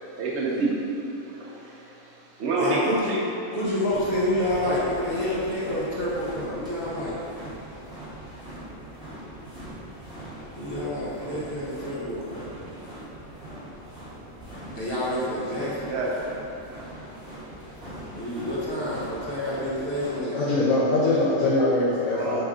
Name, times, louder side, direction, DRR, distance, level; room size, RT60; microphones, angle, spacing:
voice 1, 0.2-0.8 1.3-1.8 2.4-3.2 15.9-16.1 22.1-22.4, right 3 dB, 60° right, -4 dB, 0.8 m, -27 dB
voice 2, 2.6-3.1 3.5-7.1 10.6-12.5 14.7-15.9 18.1-20.4, left 1 dB, 45° left, -7 dB, 1.0 m, -28 dB
sound 1, 3.9-20.2, right 1 dB, 5° right, 1.2 m, -41 dB
voice 3, 20.3-22.4, left 2 dB, 80° left, -10 dB, 1.2 m, -22 dB
4.9 x 2.6 x 3.6 m, 2.9 s
omnidirectional pair, 1.5 m